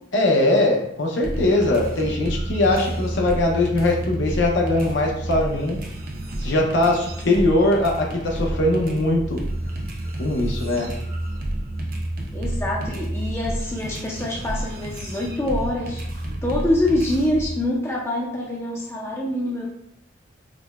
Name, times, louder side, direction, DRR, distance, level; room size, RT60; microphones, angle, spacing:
voice 1, 0.1-5.8 6.4-9.4 10.2-10.9, left 2 dB, 65° left, 0 dB, 0.7 m, -21 dB
sound 1, 1.2-17.5, right 1 dB, 45° right, 0.5 m, -30 dB
voice 2, 12.3-16.0 16.4-19.7, left 1 dB, 15° left, -3 dB, 0.4 m, -25 dB
4.8 x 2.1 x 2.3 m, 0.75 s
head